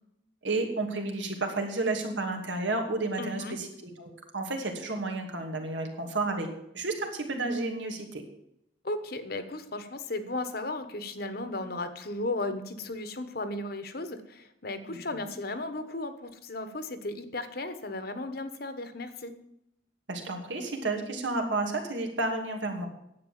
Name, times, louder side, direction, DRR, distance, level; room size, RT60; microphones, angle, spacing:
voice 1, 0.4-6.5 6.7-8.2 14.9-15.0 20.1-22.9, right 2 dB, 90° right, 3 dB, 2.6 m, -31 dB
voice 2, 3.2-3.6 8.8-19.3, left 2 dB, 55° left, 10 dB, 1.3 m, -35 dB
10.5 x 8.3 x 7.6 m, 0.79 s
head